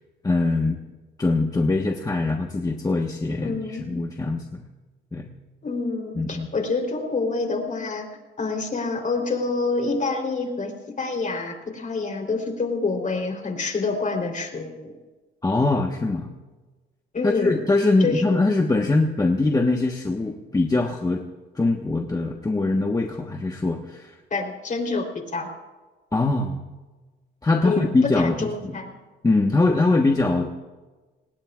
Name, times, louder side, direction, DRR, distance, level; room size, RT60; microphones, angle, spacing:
voice 1, 0.2-0.8 1.2-4.6 5.1-5.3 6.2-6.5 15.4-16.3 17.2-21.2 21.5-24.2 26.1-26.6 27.4-28.7 29.2-30.5, left 2 dB, 20° left, 2 dB, 1.3 m, -22 dB
voice 2, 3.4-3.9 5.6-8.1 8.4-14.9 17.1-17.6 18.0-18.3 24.3-25.5 27.6-28.9, left 3 dB, 40° left, 3 dB, 3.7 m, -27 dB
27.0 x 19.5 x 2.5 m, 1.2 s
cardioid pair, 90°, 20 cm